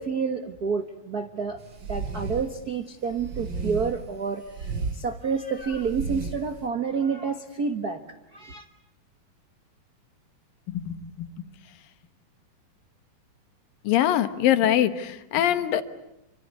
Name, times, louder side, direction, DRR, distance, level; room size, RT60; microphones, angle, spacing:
voice 1, 0.0-1.6 1.9-8.0 8.3-8.7, right 5 dB, 85° right, 8 dB, 0.8 m, -29 dB
sound 1, 1.7-2.5 3.1-4.1 4.4-5.0 5.6-6.4, right 4 dB, 40° right, 2.6 m, -33 dB
voice 2, 10.7-11.3 13.8-15.8, left 11 dB, 85° left, 11 dB, 3.0 m, -23 dB
28.0 x 25.0 x 8.3 m, 0.85 s
omnidirectional pair, 3.9 m